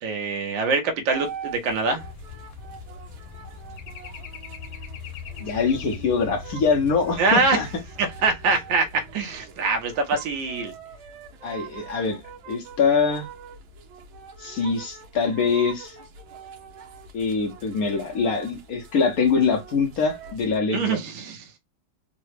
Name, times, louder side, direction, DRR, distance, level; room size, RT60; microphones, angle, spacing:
voice 1, 0.0-2.0 7.2-7.7 8.0-10.7 20.7-21.6, right 4 dB, 75° right, 1.5 m, -24 dB
sound 1, 1.1-20.6, right 6 dB, 90° right, 1.6 m, -44 dB
sound 2, 2.0-10.5 10.8-11.0, left 5 dB, 85° left, 1.4 m, -41 dB
voice 2, 5.4-7.7 11.4-12.2 12.5-13.3 14.4-16.0 17.1-21.0, left 5 dB, 70° left, 0.9 m, -23 dB
3.8 x 2.0 x 3.1 m
omnidirectional pair, 2.1 m